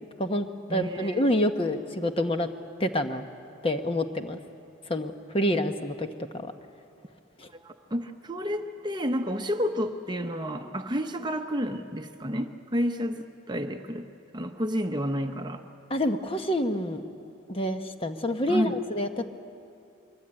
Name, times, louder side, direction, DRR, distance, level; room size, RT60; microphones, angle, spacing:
voice 1, 0.2-2.5 2.8-3.3 3.6-4.4 4.9-6.1 6.3-6.5 7.4-7.5 15.9-17.0 17.5-19.3, left 1 dB, 30° left, 6 dB, 1.0 m, -27 dB
voice 2, 0.7-1.2 7.6-15.6 18.5-18.8, equal, 20° right, 6 dB, 0.9 m, -30 dB
23.5 x 23.0 x 8.8 m, 2.6 s
head